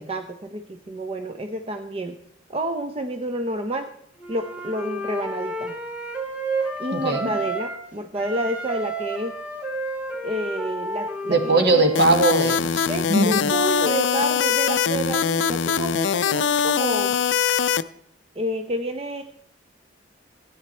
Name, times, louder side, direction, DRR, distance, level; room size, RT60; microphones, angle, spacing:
voice 1, 0.0-2.2 2.5-3.9 4.3-5.7 6.8-9.4 10.2-11.8 12.9-17.1 18.4-19.2, right 1 dB, 30° right, 7 dB, 0.6 m, -29 dB
Wind instrument woodwind instrument, 4.2-7.9 8.1-12.1, right 2 dB, 10° right, 1.9 m, -31 dB
voice 2, 6.9-7.3 11.3-13.5, right 2 dB, 60° right, 5 dB, 1.7 m, -20 dB
sound 1, 12.0-17.8, left 7 dB, 65° left, 0.4 m, -22 dB
14.5 x 9.4 x 4.3 m, 0.71 s
head